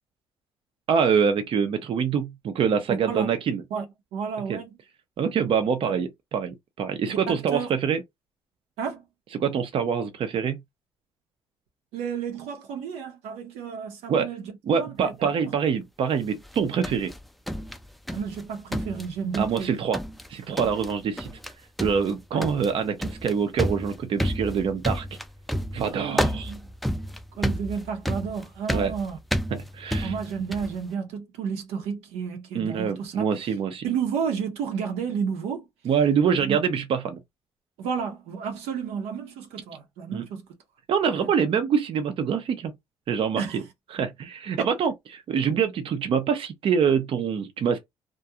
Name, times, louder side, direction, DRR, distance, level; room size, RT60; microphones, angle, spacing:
voice 1, 0.9-3.6 4.5-4.6 5.2-8.0 9.3-10.6 14.1-14.3 14.7-17.1 19.4-20.0 20.3-21.3 21.8-25.1 25.7-26.5 28.7-28.9 29.5-30.1 32.5-33.8 35.8-37.2 40.1-40.2 40.9-42.7 43.1-43.6 43.9-47.8, right 7 dB, 60° right, 0.5 m, -25 dB
voice 2, 2.9-3.3 3.7-3.9 4.1-4.8 7.1-7.7 8.8-9.1 11.9-15.5 18.1-19.7 22.3-22.5 25.9-26.7 27.4-29.2 30.0-33.3 33.8-35.6 36.4-36.6 37.8-40.5 41.1-41.3 43.3-43.6 44.6-44.7, right 6 dB, 90° right, 0.8 m, -31 dB
sound 1, 16.4-18.4 18.7-19.7 19.9-20.3 20.6-20.9 21.2-21.5 21.8-30.8, equal, ahead, 0.3 m, -30 dB
2.4 x 2.2 x 2.7 m
supercardioid pair, 75°, 11 cm